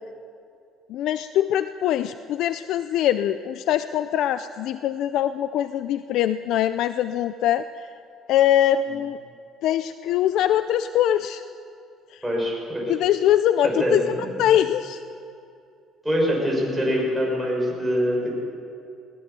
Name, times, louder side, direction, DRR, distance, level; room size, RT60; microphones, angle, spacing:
voice 1, 0.9-7.6 8.3-9.2 9.6-11.4 12.1-12.2 12.9-15.0, left 11 dB, 70° left, 12 dB, 0.5 m, -22 dB
voice 2, 12.2-12.9 13.6-14.4 16.0-18.3, equal, ahead, -3 dB, 6.0 m, -24 dB
21.0 x 18.0 x 6.9 m, 2.6 s
cardioid pair, 125°, 0 cm